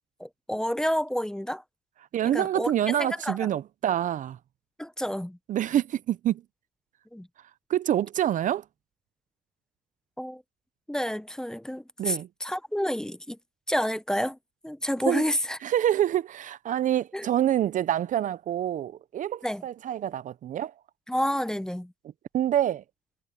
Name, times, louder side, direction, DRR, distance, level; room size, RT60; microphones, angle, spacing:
voice 1, 0.2-1.6 2.3-3.4 4.8-5.4 7.1-7.3 10.2-10.4 10.9-13.4 13.7-14.4 14.6-15.6 17.1-17.3 19.4-19.6 21.1-21.9, equal, 5° left, 0.7 m, -29 dB
voice 2, 2.1-4.4 5.5-6.4 7.7-8.6 12.0-12.3 15.1-15.2 15.6-20.7 22.3-22.8, right 11 dB, 50° right, 0.6 m, -26 dB
cardioid pair, 110°, 17 cm